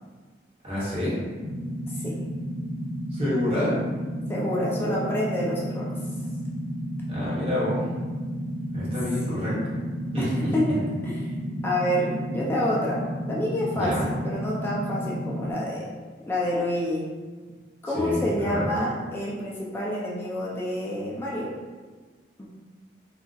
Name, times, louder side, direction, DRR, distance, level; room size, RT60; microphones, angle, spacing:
voice 1, 0.6-1.2 3.1-3.8 7.1-7.8 8.7-9.6 10.1-10.5 11.4-11.6 13.7-14.1 17.9-18.7, left 1 dB, 35° right, -8 dB, 0.9 m, -27 dB
sound 1, 1.4-15.5, equal, 90° right, 0.9 m, -32 dB
voice 2, 4.3-5.9 9.3-9.6 10.2-11.3 11.6-15.9 16.3-17.1 17.8-21.5 22.4-22.5, left 1 dB, 15° left, -5 dB, 0.4 m, -28 dB
2.4 x 2.0 x 3.8 m, 1.4 s
head